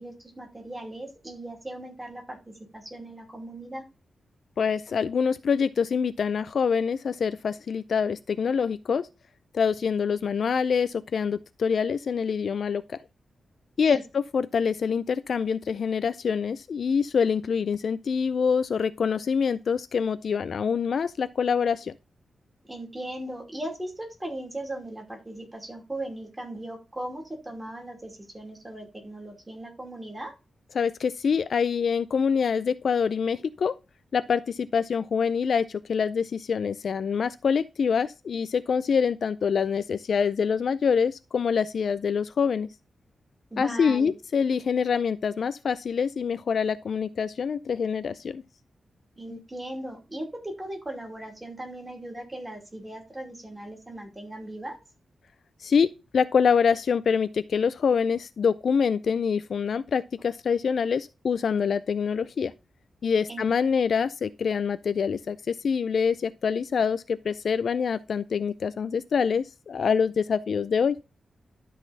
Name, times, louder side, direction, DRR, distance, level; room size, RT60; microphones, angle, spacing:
voice 1, 0.0-3.8 13.9-14.0 22.6-30.3 43.5-44.1 49.2-54.8 63.3-63.4, right 1 dB, 15° right, 2.7 m, -38 dB
voice 2, 4.6-9.1 9.5-13.0 13.8-14.0 14.3-21.9 30.7-33.8 34.1-42.7 43.6-48.4 49.3-49.4 55.6-62.5 63.0-71.0, left 6 dB, 55° left, 0.4 m, -25 dB
12.5 x 4.1 x 3.9 m
wide cardioid pair, 165°, 0 cm